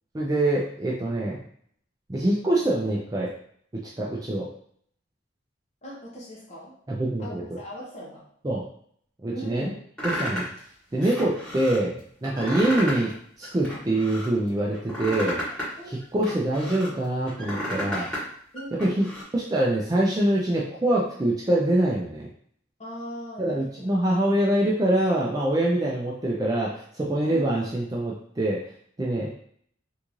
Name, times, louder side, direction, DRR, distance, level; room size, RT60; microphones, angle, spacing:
voice 1, 0.1-1.4 2.1-3.3 4.0-4.5 6.9-7.4 8.4-8.7 9.2-9.7 10.0-10.5 10.9-15.4 15.9-18.1 18.8-19.1 19.3-22.3 23.4-28.6 29.0-29.3, right 1 dB, 20° right, -4 dB, 0.4 m, -25 dB
voice 2, 5.8-6.7 7.2-8.3 9.3-9.7 15.8-16.0 18.5-19.1 22.8-23.9 27.3-27.7, right 1 dB, 35° left, -6 dB, 0.9 m, -39 dB
sound 1, 10.0-10.6 11.0-11.8 12.2-13.1 13.4-14.3 14.7-16.9 17.3-18.2 18.5-19.2, equal, 5° left, 1.2 m, -32 dB
3.6 x 2.5 x 3.0 m, 0.62 s
head